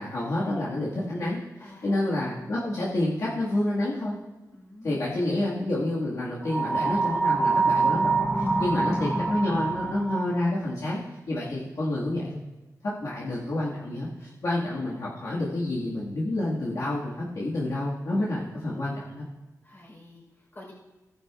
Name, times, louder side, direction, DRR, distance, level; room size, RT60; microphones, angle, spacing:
voice 1, 0.0-4.2 4.8-11.0 11.3-12.4 12.8-19.2, left 1 dB, 60° left, -8 dB, 1.9 m, -29 dB
voice 2, 1.6-2.1 4.5-5.2 8.6-8.9 19.6-20.7, left 1 dB, 35° left, -3 dB, 4.2 m, -49 dB
sound 1, 6.4-10.4, right 3 dB, ahead, 0.9 m, -25 dB
16.0 x 10.5 x 2.4 m, 1.1 s
wide cardioid pair, 125°, 7 cm